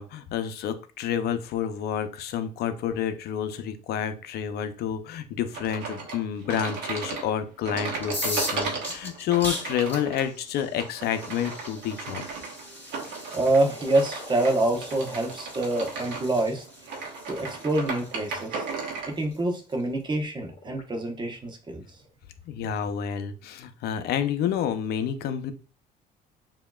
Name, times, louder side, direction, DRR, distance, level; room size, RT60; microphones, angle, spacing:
voice 1, 0.0-12.2 22.5-25.5, left 9 dB, 70° left, 9 dB, 0.6 m, -29 dB
sound 1, 5.5-19.1, right 4 dB, 85° right, 1.3 m, -36 dB
sound 2, 8.0-19.7, left 1 dB, 10° left, 2.3 m, -39 dB
sound 3, 11.2-11.3 13.1-17.6 19.7-20.8 21.9-22.1, left 1 dB, 35° left, 1.9 m, -46 dB
voice 2, 13.3-16.6 17.3-18.6 19.1-21.8, right 2 dB, 25° right, 4 dB, 1.0 m, -26 dB
6.9 x 2.9 x 2.3 m, 0.37 s
cardioid pair, 110°, 17 cm